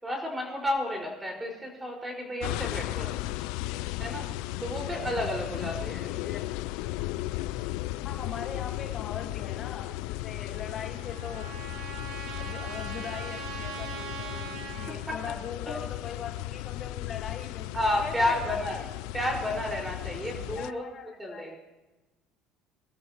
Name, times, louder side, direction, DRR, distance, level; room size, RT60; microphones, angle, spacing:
voice 1, 0.0-3.2 4.0-4.3 4.6-6.1 15.1-15.2 15.7-15.8 17.7-18.8 19.1-20.8 21.2-21.6, left 1 dB, 10° right, -1 dB, 5.1 m, -31 dB
sound 1, 2.4-20.7, left 17 dB, 80° left, 0.4 m, -35 dB
voice 2, 6.1-6.5 8.0-11.5 12.4-17.7 18.0-18.8 20.5-21.5, left 7 dB, 40° left, 3 dB, 1.3 m, -41 dB
Trumpet, 10.5-15.0, right 6 dB, 70° right, 2.0 m, -41 dB
25.0 x 13.0 x 3.0 m, 1.1 s
cardioid pair, 125°, 0 cm